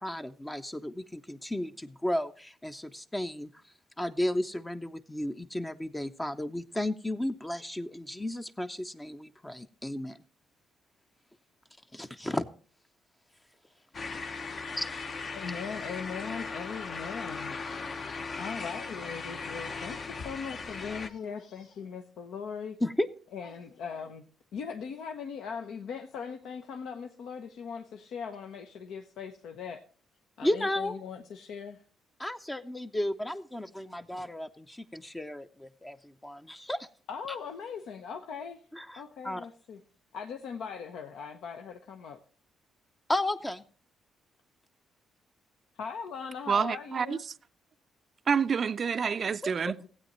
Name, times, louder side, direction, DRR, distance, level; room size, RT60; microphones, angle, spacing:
voice 1, 0.0-3.5 4.0-10.2 11.9-12.5 14.8-14.9 22.8-23.1 30.4-31.0 32.2-36.9 38.7-39.5 43.1-43.6 49.7-49.8, left 1 dB, 10° left, 0.5 m, -33 dB
sound 1, 13.9-21.1, left 4 dB, 45° left, 0.8 m, -38 dB
voice 2, 15.3-17.6 17.9-18.0 18.4-22.8 23.3-24.2 24.5-29.8 30.4-31.8 37.1-38.6 39.0-39.8 40.1-42.2 45.8-47.2 49.8-49.9, left 6 dB, 80° left, 0.8 m, -40 dB
voice 3, 46.5-47.2 48.3-49.8, right 6 dB, 45° right, 0.4 m, -28 dB
15.5 x 8.6 x 3.0 m
cardioid pair, 90°, 0 cm